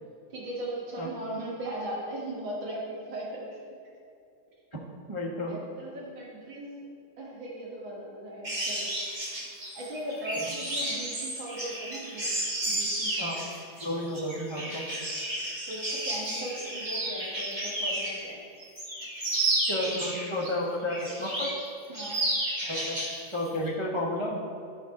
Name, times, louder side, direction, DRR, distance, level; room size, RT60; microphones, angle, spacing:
voice 1, 0.3-3.6 5.5-6.8 7.2-8.9 9.7-13.5 15.7-18.4 21.9-22.2, right 1 dB, 65° right, -4 dB, 2.3 m, -38 dB
voice 2, 5.1-5.6 13.2-13.4 13.8-14.8 19.7-21.5 22.7-23.0 23.3-24.4, left 1 dB, 40° right, -5 dB, 0.4 m, -32 dB
sound 1, 8.4-18.3 18.6-20.5 20.9-21.6 21.9-23.2 23.5-23.7, right 1 dB, 25° right, 1.5 m, -32 dB
12.5 x 5.2 x 4.2 m, 2.5 s
omnidirectional pair, 2.4 m